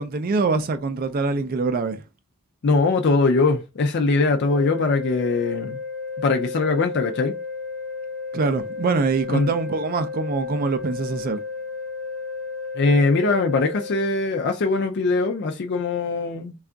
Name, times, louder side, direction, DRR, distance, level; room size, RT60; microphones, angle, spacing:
voice 1, 0.0-2.0 8.3-11.4, right 4 dB, 40° right, 0.3 m, -24 dB
voice 2, 2.6-5.8 6.2-7.4 9.3-9.5 12.7-16.5, left 3 dB, 50° left, 0.4 m, -21 dB
sound 1, 4.4-14.1, left 4 dB, 10° right, 0.7 m, -33 dB
3.3 x 2.4 x 3.8 m
head